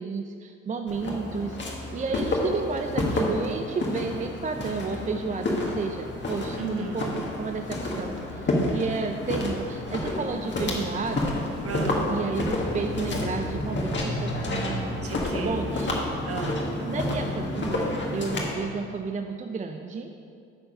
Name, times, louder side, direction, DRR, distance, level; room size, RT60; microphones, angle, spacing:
voice 1, 0.0-11.4 12.1-15.0 15.4-16.0 16.4-16.6 16.9-20.1, right 4 dB, 25° right, 5 dB, 0.5 m, -32 dB
Walk footsteps, 0.9-18.6, left 2 dB, 40° left, 1.7 m, -29 dB
voice 2, 6.6-7.0 11.6-12.2 15.0-15.7 16.2-16.7, right 3 dB, 50° right, 3 dB, 1.2 m, -34 dB
9.0 x 4.5 x 5.4 m, 2.3 s
hypercardioid pair, 65°, 30 cm